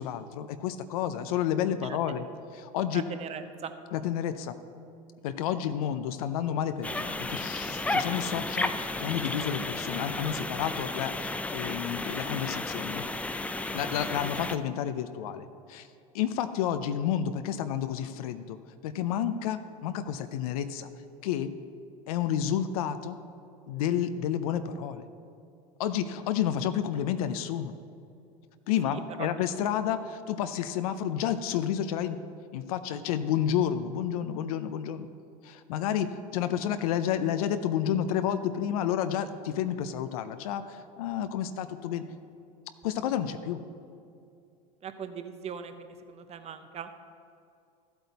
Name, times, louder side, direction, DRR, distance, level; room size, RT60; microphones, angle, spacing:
voice 1, 0.0-2.2 2.5-3.0 3.9-4.5 5.2-13.0 13.7-15.9 16.1-18.6 18.8-20.9 21.2-21.5 22.1-23.2 23.7-25.1 25.8-27.7 28.7-32.2 32.5-35.1 35.4-42.0 42.8-43.6, left 9 dB, 80° left, 10 dB, 0.6 m, -30 dB
voice 2, 2.9-3.7 14.1-14.2 28.8-29.3 44.8-47.0, right 7 dB, 35° right, 9 dB, 0.8 m, -40 dB
sound 1, 6.8-14.6, left 2 dB, 5° left, 0.4 m, -33 dB
13.0 x 8.0 x 4.1 m, 2.6 s
supercardioid pair, 100°, 18 cm